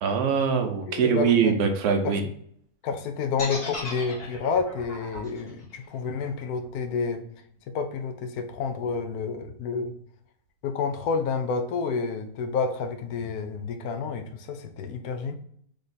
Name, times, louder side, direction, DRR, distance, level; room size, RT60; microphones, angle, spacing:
voice 1, 0.0-2.2, right 6 dB, 90° right, 5 dB, 1.2 m, -23 dB
voice 2, 0.9-1.6 2.0-2.2 2.8-7.2 7.7-9.9 10.6-15.3, left 5 dB, 80° left, 7 dB, 1.1 m, -29 dB
sound 1, 3.4-7.4, left 1 dB, 55° left, 2.0 m, -38 dB
3.7 x 3.5 x 4.0 m, 0.67 s
omnidirectional pair, 1.6 m